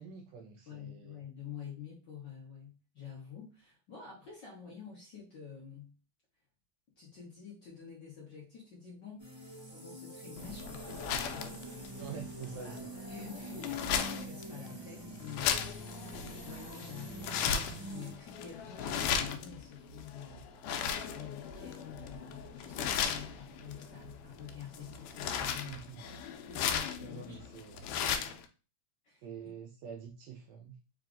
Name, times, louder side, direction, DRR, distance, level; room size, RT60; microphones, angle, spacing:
voice 1, 0.0-1.2 12.0-12.9 25.6-26.1 27.0-27.8 29.2-30.8, right 7 dB, 80° right, 4 dB, 1.6 m, -46 dB
voice 2, 0.7-5.9 7.0-9.2 9.7-11.6 12.5-12.8 13.1-20.5 21.1-25.8 26.5-27.6 28.0-28.3 29.0-29.3, left 7 dB, 55° left, -5 dB, 1.3 m, -48 dB
sound 1, 9.2-18.1, right 1 dB, 25° right, 0.6 m, -46 dB
sound 2, 10.4-28.5, left 7 dB, 85° left, 2.0 m, -37 dB
sound 3, 19.3-28.1, right 2 dB, 60° right, 0.8 m, -57 dB
4.8 x 2.8 x 3.8 m, 0.33 s
omnidirectional pair, 3.5 m